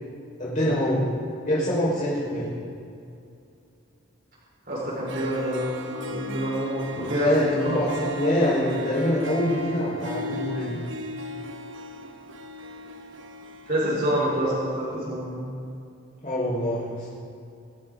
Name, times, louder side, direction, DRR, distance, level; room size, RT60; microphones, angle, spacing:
voice 1, 0.4-1.1 1.5-2.5 6.9-10.8 16.2-17.1, left 1 dB, 40° left, -8 dB, 5.0 m, -25 dB
voice 2, 4.7-7.8 13.7-15.5, equal, 45° right, -6 dB, 4.5 m, -27 dB
Harp, 4.8-4.9 5.1-14.6, equal, 65° right, 1.1 m, -37 dB
25.0 x 13.5 x 3.9 m, 2.5 s
head